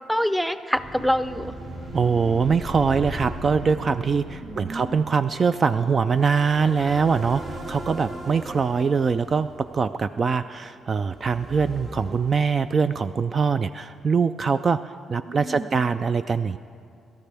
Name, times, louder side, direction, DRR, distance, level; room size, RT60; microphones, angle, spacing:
voice 1, 0.1-1.5 4.4-4.9 15.1-15.7, equal, ahead, 12 dB, 0.6 m, -26 dB
sound 1, 0.7-10.3 11.0-13.0, right 1 dB, 55° right, 3.0 m, -38 dB
voice 2, 1.9-16.6, right 5 dB, 40° right, 12 dB, 0.3 m, -23 dB
26.0 x 13.0 x 3.4 m, 2.3 s
cardioid pair, 90°, 0 cm